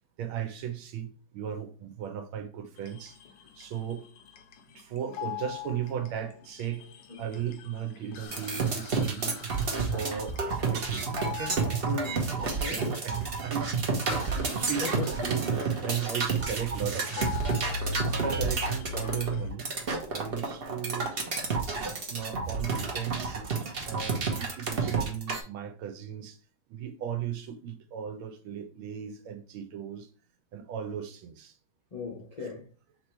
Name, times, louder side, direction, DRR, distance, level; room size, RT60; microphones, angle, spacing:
voice 1, 0.2-3.2 3.6-4.1 4.7-6.8 7.2-9.4 9.9-10.4 10.7-11.6 12.5-17.3 17.8-19.7 20.1-21.1 21.7-23.4 23.8-26.4 26.7-30.1 30.5-31.6, right 9 dB, 85° right, 1.5 m, -36 dB
sound 1, 2.8-19.5, left 6 dB, 75° left, 1.2 m, -42 dB
sound 2, 8.3-25.4, right 4 dB, 50° right, 0.6 m, -30 dB
voice 2, 11.8-12.9 14.1-14.3 14.8-15.1 31.9-32.7, left 3 dB, 45° left, 0.4 m, -37 dB
3.6 x 3.0 x 4.3 m
omnidirectional pair, 2.2 m